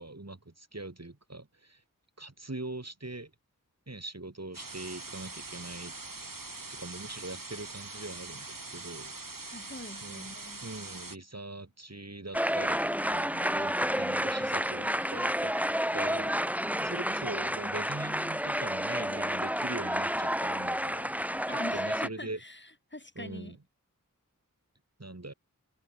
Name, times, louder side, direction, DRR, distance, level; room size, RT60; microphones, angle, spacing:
voice 1, 0.0-1.8 2.2-3.3 3.9-6.0 6.7-9.1 10.0-10.3 10.6-15.5 15.9-16.4 16.8-21.1 21.7-22.4 23.1-23.6 25.0-25.3, right 2 dB, 50° right, 6.3 m, -42 dB
sound 1, 4.5-11.2, right 3 dB, 75° right, 4.6 m, -43 dB
voice 2, 9.5-10.7 21.5-23.6, left 1 dB, 35° left, 7.2 m, -44 dB
sound 2, 12.3-22.1, equal, 5° right, 1.8 m, -30 dB
wide cardioid pair, 50°, 34 cm